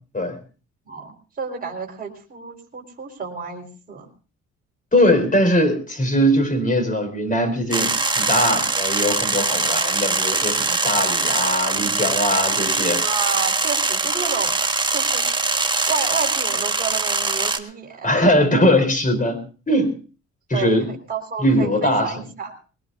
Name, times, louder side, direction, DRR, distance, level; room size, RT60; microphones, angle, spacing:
voice 1, 0.9-4.1 9.3-9.8 12.9-14.6 14.9-15.3 15.9-18.2 20.5-22.5, right 6 dB, 30° right, 0 dB, 4.2 m, -31 dB
voice 2, 4.9-13.0 18.0-19.9 20.5-20.9 21.4-22.1, equal, 25° left, 10 dB, 4.2 m, -20 dB
sound 1, 7.7-17.6, right 3 dB, 15° right, 1.4 m, -22 dB
21.5 x 18.0 x 2.6 m, 0.35 s
cardioid pair, 90°, 30 cm